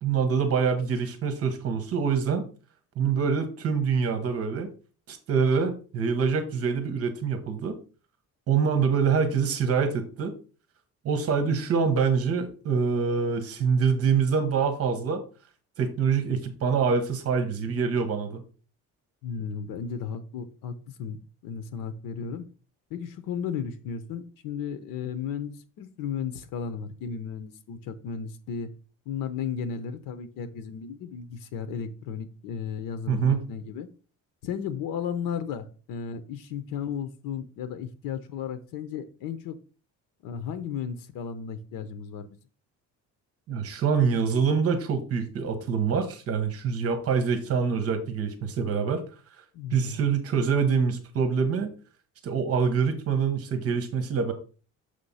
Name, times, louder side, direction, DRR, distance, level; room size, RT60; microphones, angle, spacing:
voice 1, 0.0-2.4 3.0-4.7 5.1-7.8 8.5-10.3 11.0-15.2 15.8-18.4 33.1-33.5 43.5-49.0 49.7-51.7 52.2-54.3, right 6 dB, 45° right, 8 dB, 1.2 m, -25 dB
voice 2, 19.2-22.4 22.9-28.7 29.1-33.9 34.4-39.6 40.2-42.4 49.5-50.0, left 7 dB, 90° left, 12 dB, 0.8 m, -34 dB
6.7 x 3.3 x 5.6 m, 0.37 s
cardioid pair, 175°, 32 cm